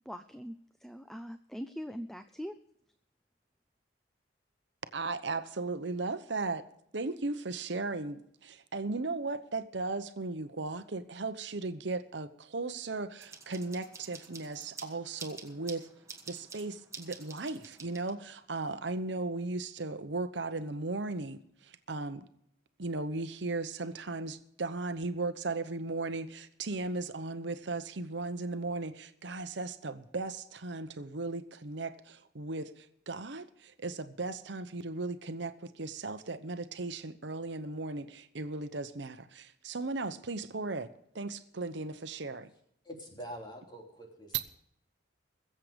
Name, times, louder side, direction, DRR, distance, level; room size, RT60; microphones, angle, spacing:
voice 1, 0.1-2.6, equal, ahead, 10 dB, 0.5 m, -42 dB
voice 2, 4.9-6.7 6.9-15.9 16.3-22.3 22.8-40.9 41.1-42.5, right 3 dB, 70° right, 10 dB, 0.9 m, -36 dB
sound 1, 13.2-18.4, right 4 dB, 15° right, 1.4 m, -49 dB
voice 3, 42.8-44.4, equal, 25° left, 1 dB, 3.3 m, -45 dB
22.0 x 7.7 x 5.1 m, 0.73 s
head